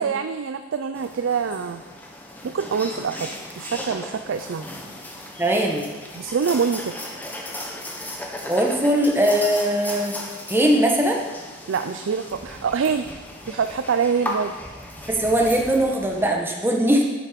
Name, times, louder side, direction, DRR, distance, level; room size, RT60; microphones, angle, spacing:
voice 1, 0.0-1.8 2.4-3.3 3.6-4.7 6.1-6.9 11.7-13.1 13.5-14.5, right 6 dB, 80° right, 8 dB, 0.4 m, -25 dB
sound 1, 0.9-16.2, left 1 dB, 10° left, 1.0 m, -36 dB
voice 2, 5.4-5.8 8.5-10.1 10.5-11.2 15.1-17.0, right 1 dB, 10° right, 0 dB, 1.2 m, -20 dB
9.3 x 7.8 x 5.1 m, 1.3 s
head